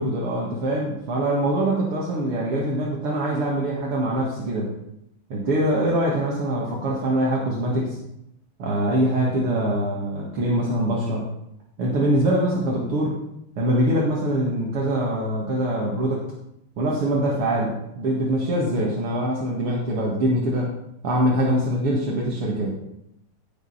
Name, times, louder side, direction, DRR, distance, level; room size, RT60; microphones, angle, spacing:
voice 1, 0.0-4.7 5.3-8.0 8.6-11.3 11.8-13.2 13.6-16.2 16.8-20.7 21.0-22.7, right 1 dB, 85° right, -4 dB, 3.0 m, -23 dB
16.5 x 6.7 x 5.8 m, 0.81 s
omnidirectional pair, 2.4 m